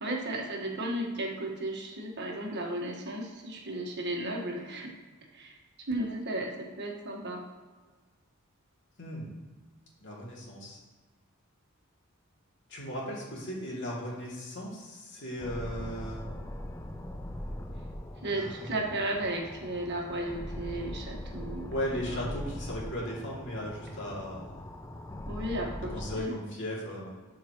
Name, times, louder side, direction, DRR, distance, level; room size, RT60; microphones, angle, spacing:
voice 1, 0.0-4.9 5.3-5.6 5.9-7.4 18.2-21.7 22.0-22.2 25.3-26.4, right 1 dB, 55° right, 0 dB, 1.4 m, -34 dB
voice 2, 9.0-9.3 10.0-10.8 12.7-16.3 18.3-18.7 21.7-24.6 25.9-27.1, equal, 60° left, -5 dB, 2.6 m, -37 dB
sound 1, 15.4-26.2, left 1 dB, 15° left, 0.5 m, -41 dB
12.0 x 4.8 x 3.0 m, 1.3 s
head